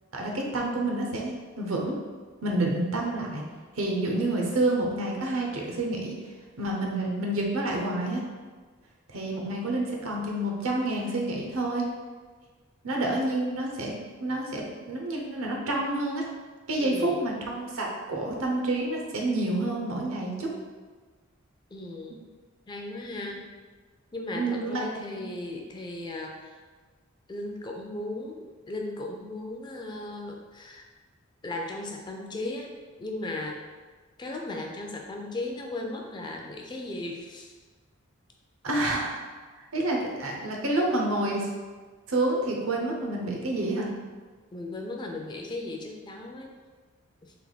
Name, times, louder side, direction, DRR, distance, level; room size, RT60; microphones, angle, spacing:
voice 1, 0.1-2.0 2.4-3.4 3.7-6.1 6.6-8.2 9.1-11.8 12.8-13.9 14.2-16.3 16.7-20.5 24.3-24.8 25.2-25.3 38.6-39.2 39.6-41.5 42.1-43.9, right 2 dB, 75° right, -1 dB, 0.8 m, -28 dB
voice 2, 16.8-17.2 21.7-22.2 22.7-23.4 24.1-26.6 27.3-30.9 31.4-32.7 33.0-33.6 34.2-37.5 44.5-46.5 47.2-47.3, left 2 dB, 20° left, 1 dB, 0.4 m, -36 dB
3.4 x 2.9 x 4.0 m, 1.4 s
head